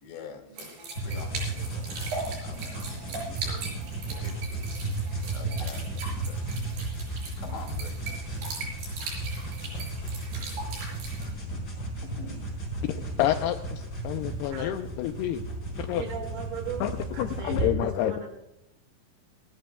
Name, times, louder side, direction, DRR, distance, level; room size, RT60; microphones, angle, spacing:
voice 1, 0.0-0.7 1.0-1.8 2.4-2.8 3.0-3.7 4.2-4.9 5.3-6.4 6.9-7.0 7.4-8.2 9.1-9.2 11.4-12.4 12.9-13.1, left 5 dB, 65° left, 4 dB, 4.3 m, -46 dB
sound 1, 0.6-11.2, right 3 dB, 60° right, 7.5 m, -39 dB
sound 2, 1.0-17.7, right 2 dB, 20° left, 4.4 m, -34 dB
voice 2, 13.2-13.5 14.0-15.4 15.8-16.0 16.8-16.9 17.2-18.3, left 12 dB, 90° left, 7 dB, 2.3 m, -28 dB
voice 3, 15.9-16.9 17.1-18.3, right 6 dB, 80° right, 4 dB, 4.4 m, -37 dB
27.5 x 12.0 x 2.3 m, 0.84 s
omnidirectional pair, 5.4 m